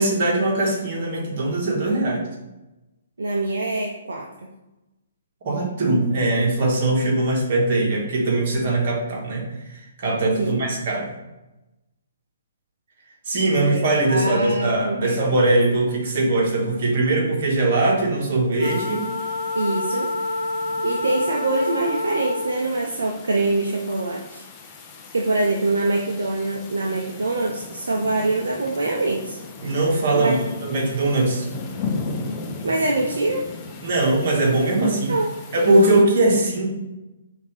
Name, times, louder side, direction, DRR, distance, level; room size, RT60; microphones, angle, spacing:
voice 1, 0.0-2.3 5.4-11.1 13.3-19.0 29.6-31.5 33.8-35.1 35.5-36.7, right 2 dB, 50° right, -1 dB, 1.5 m, -21 dB
voice 2, 3.2-4.5 10.4-10.6 13.5-13.8 14.1-15.2 19.5-20.1 20.8-24.4 25.1-29.4 30.1-30.4 32.6-33.4 35.1-35.3, right 2 dB, 75° right, 0 dB, 0.6 m, -24 dB
Wind instrument woodwind instrument, 18.6-22.7, left 2 dB, 70° left, 0.5 m, -28 dB
sound 1, 18.6-36.0, left 4 dB, 25° left, 0.6 m, -37 dB
5.7 x 2.7 x 3.4 m, 0.99 s
figure-of-eight pair, 130°, 0 cm